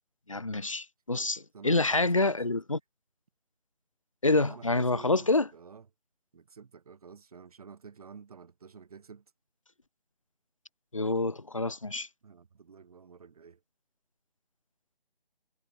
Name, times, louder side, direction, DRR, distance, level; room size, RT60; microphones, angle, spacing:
voice 1, 0.3-2.8 4.2-5.5 10.9-12.1, left 2 dB, 35° left, 0.4 m, -27 dB
voice 2, 1.5-2.5 4.4-5.9 6.3-9.2 12.2-13.6, right 6 dB, 40° right, 3.9 m, -50 dB
figure-of-eight pair, 160°, 29 cm